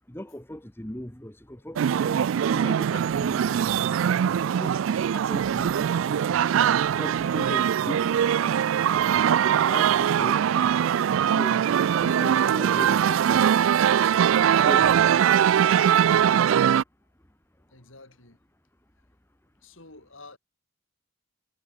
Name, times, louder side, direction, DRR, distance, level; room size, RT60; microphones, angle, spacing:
voice 1, 0.1-3.6 4.6-9.0 9.7-11.6 12.0-13.4 14.6-15.1, equal, 10° left, 1.4 m, -39 dB
sound 1, 1.8-16.8, right 9 dB, 75° right, 0.3 m, -22 dB
voice 2, 17.7-18.4 19.6-20.4, left 2 dB, 70° left, 7.6 m, -49 dB
head